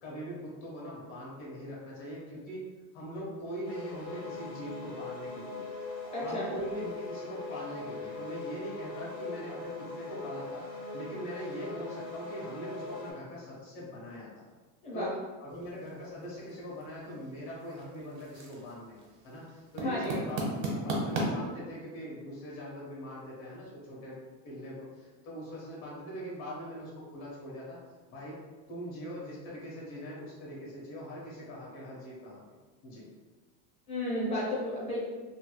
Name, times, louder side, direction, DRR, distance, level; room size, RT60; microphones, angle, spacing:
voice 1, 0.0-2.6 2.9-5.6 6.2-14.4 14.9-18.9 19.2-20.4 20.7-24.2 24.4-27.8 28.1-28.4 28.7-32.4 32.8-33.1, equal, 60° left, -5 dB, 1.2 m, -41 dB
sound 1, 3.6-13.1, left 3 dB, 40° left, 0.9 m, -41 dB
voice 2, 6.1-6.4 14.8-15.1 19.8-20.2 33.9-35.0, left 1 dB, 15° left, -6 dB, 0.5 m, -32 dB
sound 2, 15.5-21.3, right 1 dB, 90° right, 1.1 m, -38 dB
3.1 x 2.3 x 2.9 m, 1.3 s
cardioid pair, 175°, 47 cm